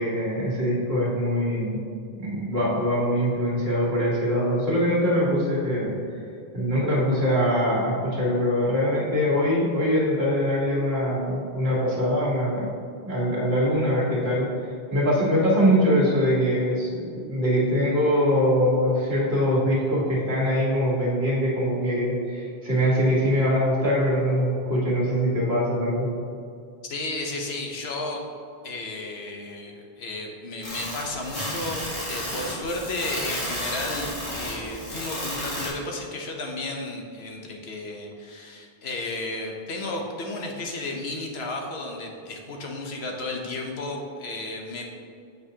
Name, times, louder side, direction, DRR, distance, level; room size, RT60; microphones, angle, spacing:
voice 1, 0.0-1.8 2.2-6.0 6.5-12.7 13.0-14.5 14.9-26.1, equal, 70° right, -5 dB, 1.7 m, -23 dB
voice 2, 26.9-28.2 28.6-44.9, left 2 dB, 75° left, 1 dB, 1.1 m, -33 dB
sound 1, 30.6-35.7, left 1 dB, 55° left, 1.9 m, -32 dB
7.9 x 5.2 x 2.8 m, 2.4 s
omnidirectional pair, 1.1 m